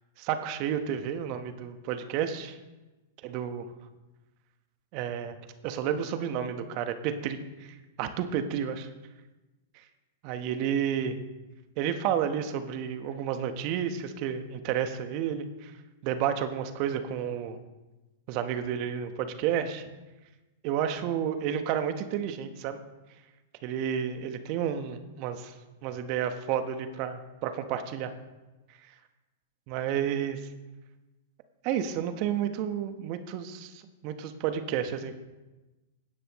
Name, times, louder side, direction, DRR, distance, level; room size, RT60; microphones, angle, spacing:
voice 1, 0.2-2.6 3.2-3.7 4.9-5.4 5.6-8.9 10.2-11.2 11.8-15.7 16.0-17.6 18.3-19.8 20.6-22.8 23.6-25.5 25.8-28.1 29.7-30.4 31.6-35.2, right 9 dB, 45° right, 8 dB, 1.2 m, -31 dB
17.0 x 9.9 x 3.2 m, 1.1 s
hypercardioid pair, 110°, 0 cm